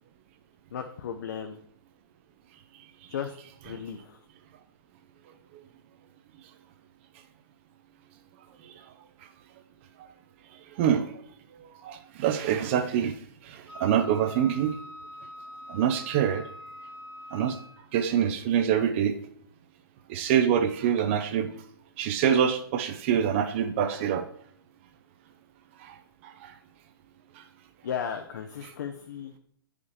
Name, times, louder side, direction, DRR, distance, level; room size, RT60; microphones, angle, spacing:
voice 1, 0.7-1.6 3.1-3.3 3.6-4.2 27.8-29.3, left 8 dB, 50° left, 6 dB, 0.5 m, -35 dB
voice 2, 10.8-11.1 11.8-13.1 13.4-14.7 15.7-16.5 17.3-17.6 17.9-19.2 20.1-21.5 22.0-24.2 25.8-26.0 26.4-26.5 28.6-28.7, right 9 dB, 30° right, 8 dB, 0.5 m, -25 dB
Wind instrument woodwind instrument, 13.7-17.9, left 1 dB, 80° left, 1.7 m, -44 dB
9.3 x 4.9 x 3.2 m, 0.63 s
figure-of-eight pair, 120°, 12 cm